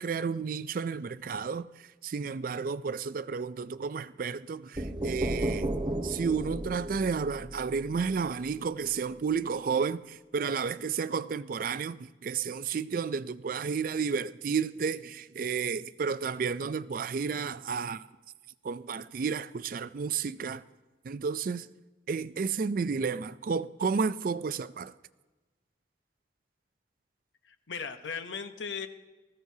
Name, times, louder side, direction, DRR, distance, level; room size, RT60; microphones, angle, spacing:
voice 1, 0.0-5.8 6.0-18.1 18.6-20.6 21.0-21.7 22.1-24.9, right 5 dB, 45° right, 0.3 m, -32 dB
sound 1, 4.8-8.5, right 1 dB, 25° right, 0.9 m, -34 dB
voice 2, 27.5-28.9, left 6 dB, 75° left, 0.9 m, -37 dB
19.5 x 14.5 x 2.8 m
head